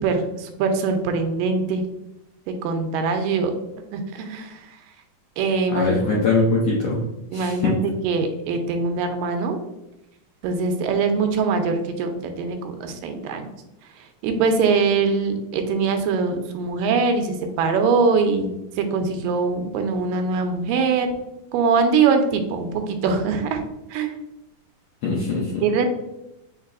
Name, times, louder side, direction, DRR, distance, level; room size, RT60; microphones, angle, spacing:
voice 1, 0.0-1.8 2.5-3.5 3.9-4.7 5.4-6.0 7.3-7.8 8.0-9.6 10.4-13.5 14.2-21.1 21.5-23.6 23.9-24.2 25.6-25.9, right 4 dB, 85° right, 6 dB, 2.2 m, -22 dB
voice 2, 5.7-7.0 7.3-7.8 25.0-25.6, left 3 dB, 80° left, -4 dB, 1.5 m, -22 dB
6.5 x 3.3 x 2.4 m, 0.90 s
omnidirectional pair, 4.0 m